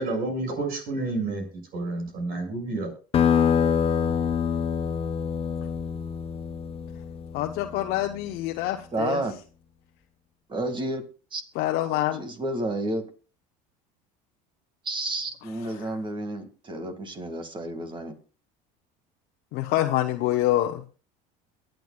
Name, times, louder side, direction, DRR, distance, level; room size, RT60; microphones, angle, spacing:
voice 1, 0.0-1.5 1.7-2.9, right 2 dB, 55° right, 4 dB, 6.5 m, -29 dB
sound 1, 3.1-8.3, left 7 dB, 35° left, 1.1 m, -26 dB
voice 2, 7.3-9.2 11.5-12.2 15.8-15.9 19.5-20.8, left 14 dB, 65° left, 4 dB, 1.0 m, -26 dB
voice 3, 8.9-9.3 10.5-11.0 11.3-11.4 12.1-13.0 14.9-18.1, right 2 dB, 30° right, 8 dB, 2.2 m, -30 dB
23.0 x 9.3 x 2.4 m, 0.36 s
supercardioid pair, 115°, 17 cm